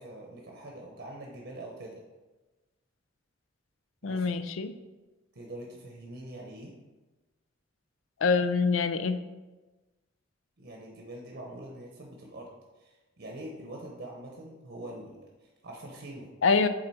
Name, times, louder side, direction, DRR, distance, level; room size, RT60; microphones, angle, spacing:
voice 1, 0.0-2.0 4.0-4.4 5.3-6.8 10.6-12.5 12.8-16.3, right 1 dB, 60° right, -1 dB, 0.9 m, -44 dB
voice 2, 4.0-4.7 8.2-9.2 16.4-16.7, left 4 dB, 85° left, 12 dB, 0.4 m, -25 dB
7.7 x 3.9 x 4.2 m, 1.2 s
head